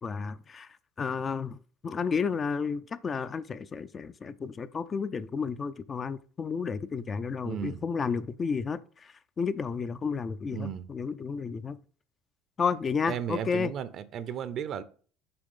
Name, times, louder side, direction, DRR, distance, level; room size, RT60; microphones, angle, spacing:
voice 1, 0.0-0.7 1.0-1.6 1.8-11.8 12.6-13.7, left 5 dB, 35° left, 0.5 m, -32 dB
voice 2, 7.4-7.8 10.5-10.9 13.1-14.8, right 9 dB, 55° right, 0.7 m, -34 dB
7.0 x 3.1 x 5.4 m
hypercardioid pair, 75°, 0 cm